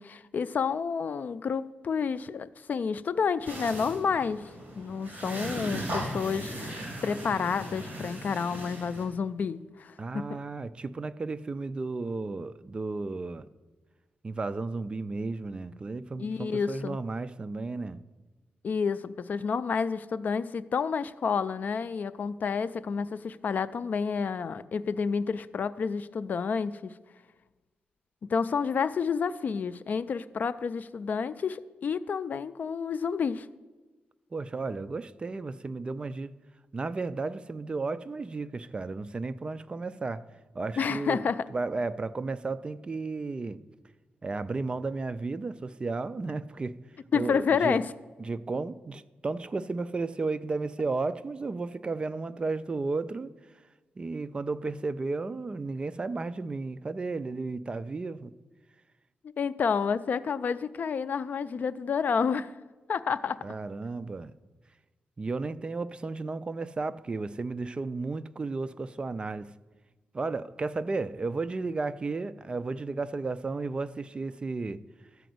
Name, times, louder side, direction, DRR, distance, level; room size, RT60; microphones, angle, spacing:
voice 1, 0.0-4.5 4.7-10.2 16.2-17.0 18.6-26.9 28.3-33.5 40.8-41.4 47.1-47.9 59.4-62.5 62.9-63.4, left 6 dB, 55° left, 0.4 m, -29 dB
sound 1, 3.4-9.0, right 1 dB, 45° right, 3.1 m, -38 dB
voice 2, 10.0-13.5 14.2-18.0 34.3-36.3 36.7-40.2 40.5-41.2 41.5-43.6 44.2-46.8 47.1-47.8 48.2-53.3 54.0-58.3 63.4-64.3 65.2-69.5 70.1-74.8, right 3 dB, 30° right, 0.4 m, -33 dB
13.0 x 5.0 x 7.8 m
wide cardioid pair, 125°, 4 cm